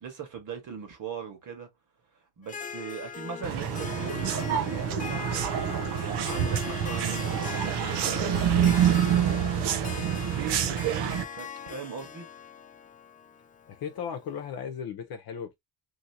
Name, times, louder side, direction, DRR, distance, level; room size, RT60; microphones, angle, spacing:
voice 1, 0.0-1.7 2.4-5.4 6.0-7.7 8.5-12.3, right 6 dB, 45° right, 1.5 m, -40 dB
Harp, 2.4-14.3, left 6 dB, 20° left, 0.3 m, -40 dB
sound 1, 3.4-11.2, right 9 dB, 70° right, 0.7 m, -27 dB
Fog Horn, 5.8-11.2, right 6 dB, 25° right, 1.1 m, -43 dB
voice 2, 13.7-15.6, left 7 dB, 55° left, 0.9 m, -36 dB
3.0 x 2.8 x 2.7 m
cardioid pair, 110°, 42 cm